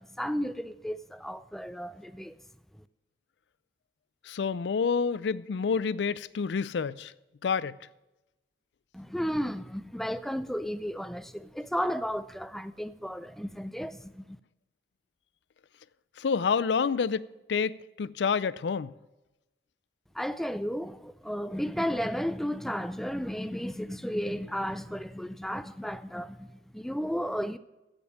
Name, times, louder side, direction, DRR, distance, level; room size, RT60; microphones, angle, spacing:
voice 1, 0.0-2.4 8.9-14.4 20.1-27.6, equal, ahead, 0.4 m, -33 dB
voice 2, 4.3-7.1 7.4-7.7 16.2-18.9, left 5 dB, 80° left, 0.4 m, -28 dB
15.0 x 5.3 x 7.1 m
head